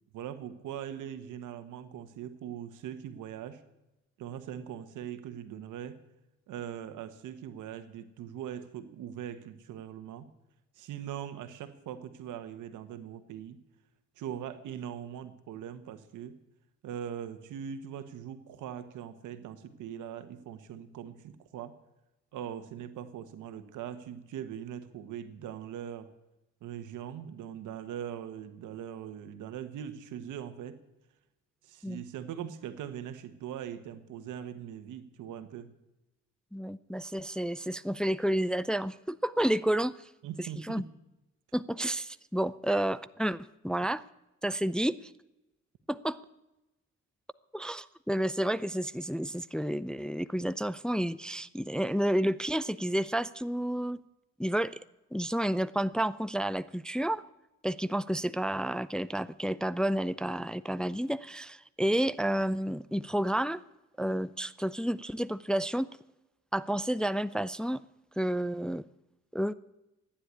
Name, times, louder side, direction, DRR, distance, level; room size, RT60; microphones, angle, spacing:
voice 1, 0.1-3.6 4.2-6.0 6.5-10.3 10.8-13.6 14.2-16.3 16.8-21.7 22.3-26.1 26.6-30.8 31.6-35.7 40.2-40.9, right 9 dB, 85° right, 10 dB, 1.4 m, -41 dB
voice 2, 36.5-40.1 40.4-40.8 41.5-44.0 44.4-45.1 45.9-46.2 47.5-54.0 54.4-54.8 55.1-57.2 57.6-63.6 64.0-65.9 66.5-67.8 68.2-68.8 69.3-69.5, right 1 dB, 5° left, 15 dB, 0.5 m, -30 dB
15.0 x 10.0 x 9.7 m, 0.95 s
cardioid pair, 90°, 30 cm